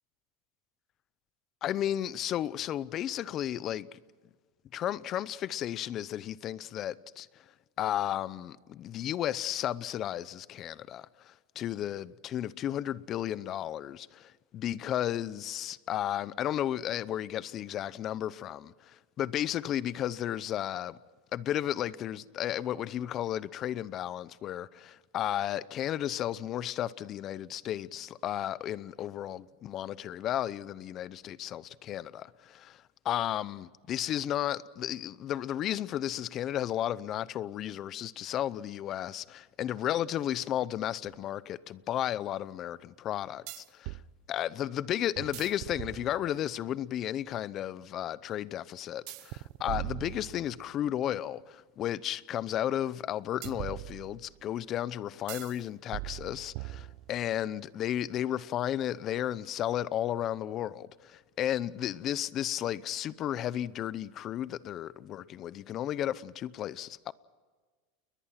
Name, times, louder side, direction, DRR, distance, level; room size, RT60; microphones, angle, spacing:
voice 1, 1.6-4.0 4.7-7.4 7.8-21.0 21.3-44.0 44.3-67.1, left 11 dB, 35° left, 0.7 m, -33 dB
sound 1, 41.0-41.1 43.5-44.1 45.2-46.5 49.1-50.8 53.4-54.4 55.3-55.6 55.9-57.3, right 20 dB, 55° right, 0.7 m, -41 dB
29.5 x 21.5 x 5.9 m
supercardioid pair, 150°, 0 cm